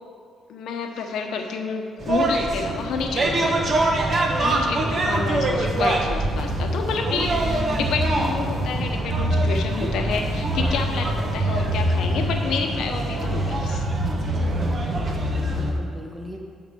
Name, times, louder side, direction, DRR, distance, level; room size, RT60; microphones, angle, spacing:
voice 1, 0.5-3.8 4.4-13.9, left 5 dB, 75° left, 4 dB, 0.9 m, -29 dB
sound 1, 2.0-15.7, right 1 dB, 40° right, 1.2 m, -24 dB
voice 2, 4.5-5.0 14.4-15.0 15.3-16.4, equal, 20° right, 0 dB, 1.5 m, -38 dB
9.0 x 3.9 x 6.8 m, 2.1 s
cardioid pair, 90°, 0 cm